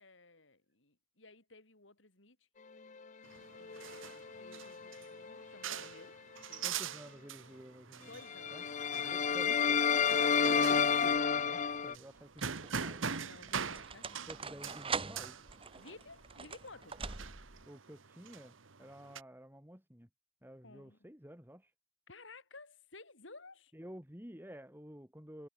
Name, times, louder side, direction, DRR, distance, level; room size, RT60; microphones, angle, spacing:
voice 1, 0.0-2.5 3.5-6.2 6.5-6.6 8.0-9.4 9.9-10.2 11.4-11.9 13.2-14.3 15.7-17.0 20.6-21.0 22.1-23.7, left 3 dB, 70° left, 4.3 m, -56 dB
sound 1, 3.2-19.2, right 6 dB, 85° right, 1.4 m, -44 dB
Lost Souls, 3.6-5.4 5.8-6.0 8.2-11.9, left 6 dB, 40° left, 0.6 m, -31 dB
voice 2, 6.6-8.2 8.5-8.6 8.9-9.8 10.6-13.1 14.3-15.4 17.7-20.1 20.4-21.7 23.7-25.5, equal, 10° right, 4.8 m, -51 dB
sound 2, 10.8-11.3 12.1-17.6, right 5 dB, 30° right, 1.3 m, -43 dB
head